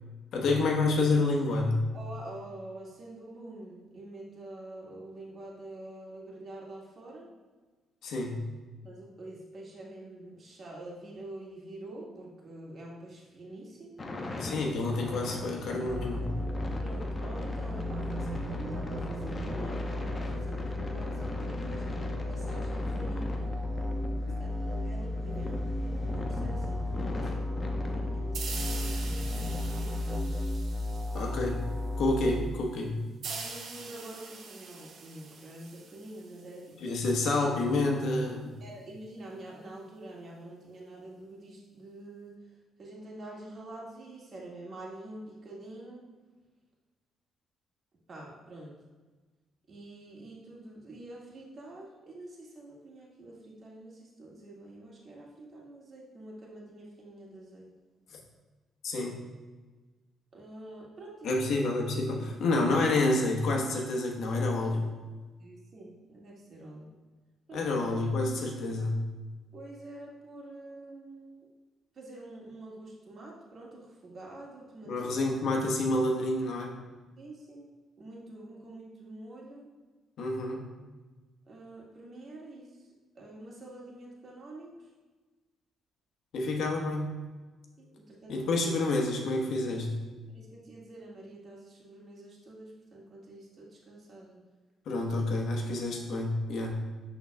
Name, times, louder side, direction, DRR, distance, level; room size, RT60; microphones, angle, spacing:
voice 1, 0.3-1.9 8.0-8.4 14.4-16.3 24.3-24.4 31.1-31.6 32.0-33.0 36.8-38.6 58.1-58.2 58.8-59.2 61.2-64.9 67.5-69.0 74.8-76.8 80.2-80.6 86.3-87.1 88.3-90.0 94.9-96.8, left 2 dB, 75° left, 0 dB, 1.2 m, -28 dB
voice 2, 1.9-7.3 8.8-14.0 16.8-21.8 22.3-23.5 24.4-30.4 31.1-31.3 33.2-36.6 38.6-42.3 42.8-46.0 48.1-48.7 49.7-57.7 60.3-61.3 65.4-66.9 67.5-67.6 69.5-71.4 72.0-74.9 77.2-77.7 78.0-79.7 81.5-82.7 83.2-84.7 87.8-88.5 90.3-94.4, right 2 dB, 50° right, -3 dB, 1.8 m, -46 dB
sound 1, 14.0-29.6, left 2 dB, 30° left, 0.8 m, -40 dB
sound 2, 15.9-32.4, left 1 dB, 15° right, 0.8 m, -34 dB
sound 3, 28.3-31.7 33.2-36.7, right 4 dB, 65° right, 1.1 m, -43 dB
11.5 x 3.9 x 2.3 m, 1.3 s
cardioid pair, 90°, 0 cm